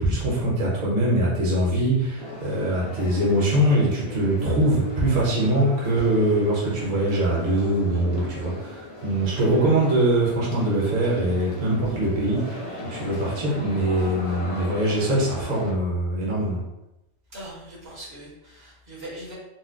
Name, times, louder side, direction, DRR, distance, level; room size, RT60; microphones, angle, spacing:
voice 1, 0.0-16.6, right 1 dB, 40° right, -5 dB, 0.8 m, -23 dB
sound 1, 2.2-15.7, left 1 dB, 40° left, 0.5 m, -37 dB
voice 2, 17.3-19.3, right 1 dB, 60° right, -5 dB, 1.3 m, -40 dB
4.2 x 2.1 x 2.5 m, 0.90 s
omnidirectional pair, 1.3 m